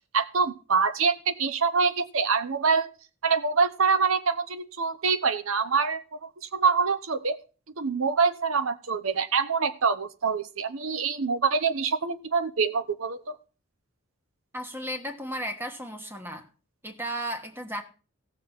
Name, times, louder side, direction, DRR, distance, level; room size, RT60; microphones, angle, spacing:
voice 1, 0.1-2.9 3.2-7.4 7.8-13.4, right 5 dB, 80° right, 0.9 m, -25 dB
voice 2, 14.5-16.5 16.8-17.8, right 1 dB, 10° right, 1.3 m, -34 dB
16.5 x 6.6 x 5.7 m
head